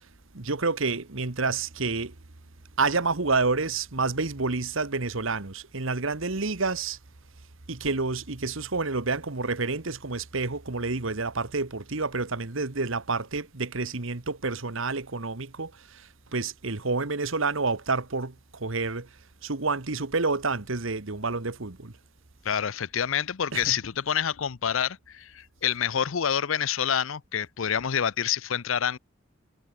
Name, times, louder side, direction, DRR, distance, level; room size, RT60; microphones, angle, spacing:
voice 1, 0.3-2.1 2.8-7.0 7.7-19.1 19.4-21.9 23.5-23.7, right 3 dB, 70° right, 1.5 m, -29 dB
voice 2, 22.4-29.0, left 8 dB, 70° left, 0.6 m, -27 dB
head